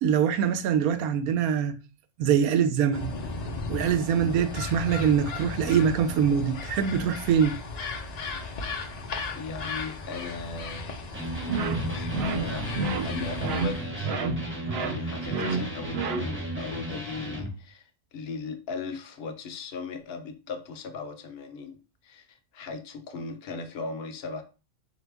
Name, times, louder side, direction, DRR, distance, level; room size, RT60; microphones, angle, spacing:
voice 1, 0.0-1.8 2.2-3.1 3.7-7.6, right 8 dB, 80° right, 1.0 m, -24 dB
sound 1, 2.9-13.9, left 3 dB, 85° left, 0.3 m, -36 dB
voice 2, 9.3-11.0 11.5-12.7 13.0-14.1 14.4-17.8 18.1-21.8 22.0-22.2 22.5-24.4, left 4 dB, 60° left, 0.7 m, -38 dB
Electric guitar, 11.1-17.5, right 1 dB, 10° right, 0.7 m, -35 dB
sound 2, 11.5-16.6, right 4 dB, 60° right, 0.7 m, -31 dB
4.0 x 2.8 x 3.4 m
omnidirectional pair, 1.5 m